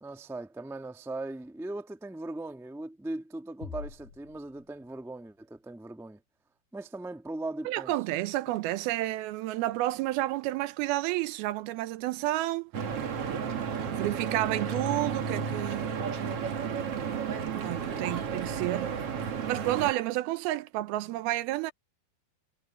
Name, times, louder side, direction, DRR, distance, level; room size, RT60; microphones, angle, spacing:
voice 1, 0.0-6.2 6.7-7.9 17.9-18.0, right 2 dB, ahead, 0.6 m, -39 dB
sound 1, 3.6-5.3, left 5 dB, 70° left, 6.1 m, -45 dB
voice 2, 7.7-12.7 13.8-16.0 17.5-18.9 19.5-21.7, right 16 dB, 80° right, 2.6 m, -30 dB
Stream / Boat Water vehicle, 12.7-19.9, right 6 dB, 50° right, 2.2 m, -32 dB
omnidirectional pair, 4.4 m